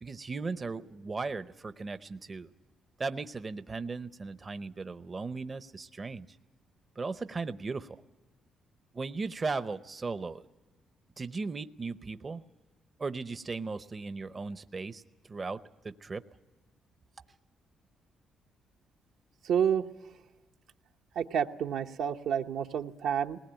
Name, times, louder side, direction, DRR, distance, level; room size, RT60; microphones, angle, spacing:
voice 1, 0.0-2.5 3.0-6.3 7.0-8.0 8.9-10.4 11.2-12.4 13.0-15.0 15.3-16.2, right 4 dB, 30° right, 12 dB, 0.7 m, -37 dB
voice 2, 19.4-19.8 21.2-23.4, right 8 dB, 80° right, 4 dB, 0.9 m, -29 dB
20.0 x 19.0 x 8.9 m, 1.2 s
cardioid pair, 90°, 0 cm